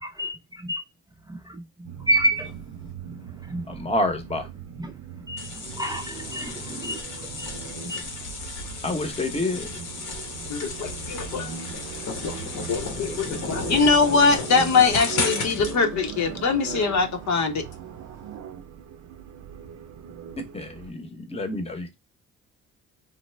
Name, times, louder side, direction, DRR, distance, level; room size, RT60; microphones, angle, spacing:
voice 1, 0.0-0.8 1.3-1.6 2.1-2.5 3.1-3.2 3.5-3.6 4.8-4.9 5.3-7.0 7.4-7.5 7.9-8.0, right 1 dB, 15° right, 0.4 m, -28 dB
sound 1, 1.8-20.9, right 9 dB, 60° right, 0.6 m, -39 dB
voice 2, 3.7-4.5 8.8-9.7 20.4-22.0, left 2 dB, 20° left, 0.8 m, -28 dB
sound 2, 5.4-15.8, left 4 dB, 85° left, 1.0 m, -34 dB
voice 3, 10.5-11.5 12.2-12.4 12.7-17.6, left 4 dB, 65° left, 0.8 m, -22 dB
3.2 x 2.0 x 3.2 m
cardioid pair, 90°, 30 cm